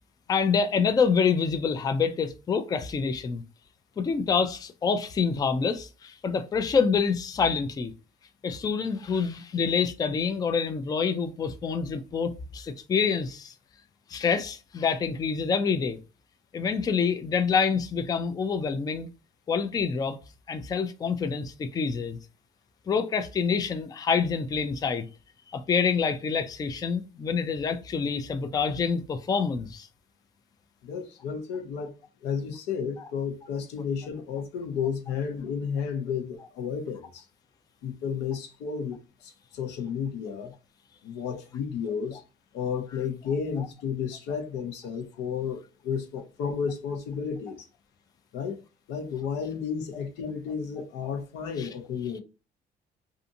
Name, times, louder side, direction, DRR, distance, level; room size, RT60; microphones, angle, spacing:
voice 1, 0.3-3.4 4.0-7.9 8.4-13.5 14.1-16.0 16.5-19.1 19.5-20.2 20.5-22.2 22.9-25.1 25.5-29.9 51.6-51.7, left 5 dB, 25° left, 0.3 m, -27 dB
voice 2, 30.8-37.3 37.8-40.5 41.0-42.2 42.5-47.7 48.3-48.6 48.9-52.2, left 6 dB, 90° left, 0.7 m, -32 dB
2.6 x 2.5 x 2.6 m
cardioid pair, 110°, 17 cm